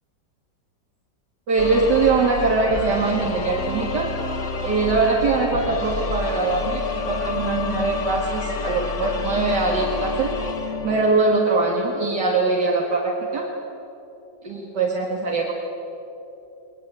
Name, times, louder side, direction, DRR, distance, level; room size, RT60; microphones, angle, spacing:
voice 1, 1.5-4.1 4.6-10.4 10.8-13.5 14.4-15.5, right 3 dB, 70° right, -1 dB, 2.6 m, -22 dB
sound 1, 1.6-11.5, left 4 dB, 45° left, 1.7 m, -29 dB
21.0 x 20.5 x 9.0 m, 2.9 s
omnidirectional pair, 1.9 m